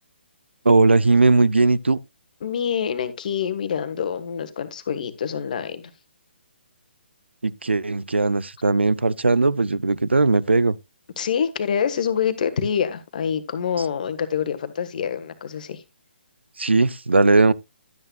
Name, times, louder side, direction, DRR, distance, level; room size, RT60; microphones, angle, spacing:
voice 1, 0.6-2.0 7.4-10.8 16.6-17.5, right 3 dB, 75° right, 0.6 m, -18 dB
voice 2, 2.4-5.9 11.2-15.8, left 7 dB, 45° left, 1.3 m, -26 dB
12.0 x 9.0 x 2.3 m
figure-of-eight pair, 135°, 6 cm